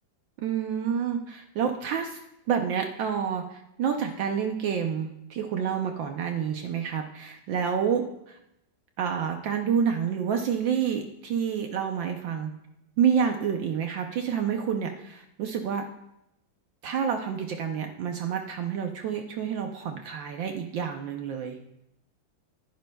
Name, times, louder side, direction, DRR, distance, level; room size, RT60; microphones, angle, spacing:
voice 1, 0.4-2.2 2.5-8.4 9.0-12.5 13.0-15.8 16.8-21.6, right 7 dB, 70° right, 4 dB, 1.4 m, -28 dB
20.0 x 10.5 x 2.3 m, 0.84 s
omnidirectional pair, 2.3 m